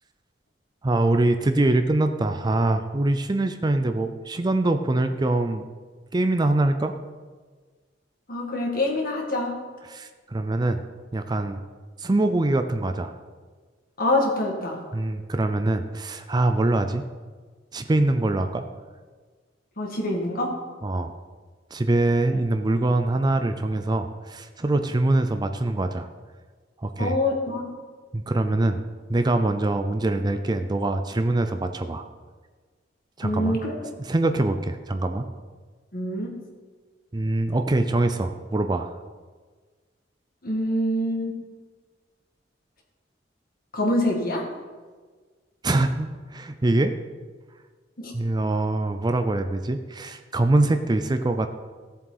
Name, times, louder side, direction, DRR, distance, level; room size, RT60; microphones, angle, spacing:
voice 1, 0.8-5.6 6.1-6.9 9.9-10.8 11.1-11.6 12.0-13.1 14.9-17.0 17.7-18.6 20.8-21.1 21.7-26.1 26.8-27.1 28.1-28.8 29.1-32.1 33.2-33.6 34.1-35.2 37.1-38.9 45.6-47.0 48.1-51.5, right 2 dB, 25° right, 7 dB, 0.5 m, -23 dB
voice 2, 8.3-9.5 14.0-14.8 19.8-20.5 27.0-27.7 33.2-33.7 35.9-36.3 40.4-41.3 43.7-44.4 48.0-48.1, left 1 dB, 50° left, 0 dB, 2.1 m, -25 dB
16.0 x 7.4 x 4.1 m, 1.5 s
head